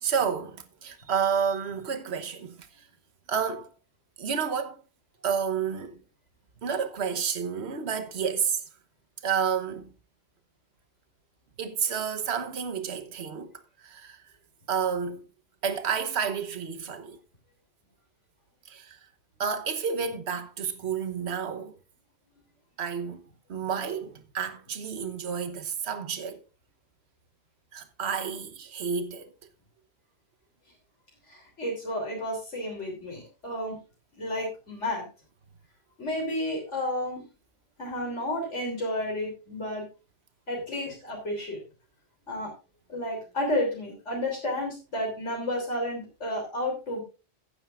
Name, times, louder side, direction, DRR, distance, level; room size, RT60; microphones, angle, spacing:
voice 1, 0.0-2.9 3.3-3.7 4.2-4.8 5.2-6.0 6.6-8.6 9.2-9.9 11.6-14.2 14.7-15.2 15.6-17.2 18.6-19.0 19.4-21.7 22.8-23.2 23.5-26.4 27.7-29.3, right 6 dB, 65° right, 1.3 m, -30 dB
voice 2, 31.3-33.8 34.2-35.1 36.0-37.2 37.8-39.9 40.5-41.6 42.3-42.5 42.9-47.0, left 1 dB, 75° left, 3.7 m, -31 dB
16.0 x 9.1 x 2.5 m
omnidirectional pair, 1.2 m